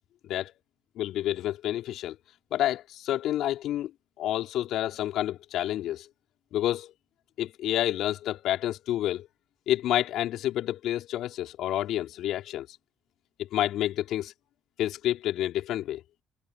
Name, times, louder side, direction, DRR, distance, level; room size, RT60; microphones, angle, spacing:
voice 1, 1.0-2.2 2.5-3.9 4.2-6.1 6.5-6.9 7.4-9.3 9.7-12.7 13.4-14.3 14.8-16.0, left 13 dB, 65° left, 3.7 m, -29 dB
hypercardioid pair, 50°, 0 cm